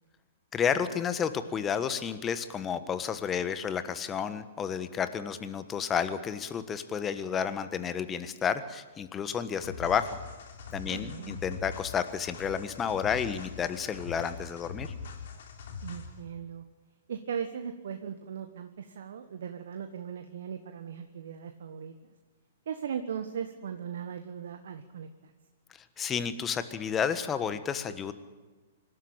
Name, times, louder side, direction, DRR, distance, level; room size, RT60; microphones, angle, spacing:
voice 1, 0.5-10.2 10.7-14.9 26.0-28.1, left 7 dB, 20° left, 11 dB, 1.4 m, -31 dB
sound 1, 9.6-16.2, left 5 dB, 60° left, 3.2 m, -42 dB
voice 2, 10.9-11.4 15.8-16.6 17.1-21.9 22.7-25.3, right 7 dB, 65° right, 7 dB, 1.3 m, -38 dB
25.5 x 13.0 x 8.9 m, 1.3 s
figure-of-eight pair, 110°, 0 cm